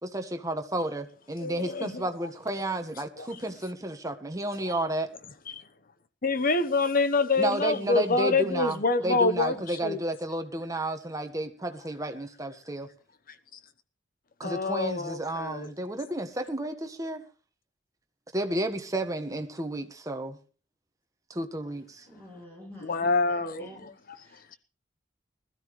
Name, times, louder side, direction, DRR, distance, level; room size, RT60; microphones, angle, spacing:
voice 1, 0.0-5.1 7.4-12.9 14.4-17.2 18.3-20.4 21.3-22.1, right 1 dB, 20° right, 1.5 m, -32 dB
voice 2, 1.4-2.0 3.2-3.3 4.7-4.8 5.5-5.6 6.2-9.5 9.8-10.0 14.4-15.7 22.9-23.7, left 3 dB, 50° left, 1.0 m, -26 dB
voice 3, 22.1-23.9 24.1-24.6, left 1 dB, 10° left, 7.9 m, -47 dB
20.0 x 13.5 x 3.2 m
head